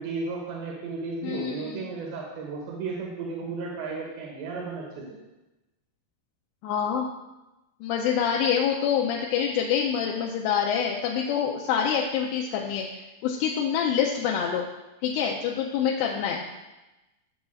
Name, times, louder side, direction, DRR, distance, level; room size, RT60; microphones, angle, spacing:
voice 1, 0.0-5.0, right 4 dB, 85° right, -3 dB, 3.7 m, -34 dB
voice 2, 1.2-1.9 6.6-7.1 7.8-14.7 15.0-16.4, left 8 dB, 80° left, 0 dB, 2.7 m, -26 dB
17.0 x 6.4 x 2.4 m, 1.0 s
omnidirectional pair, 4.9 m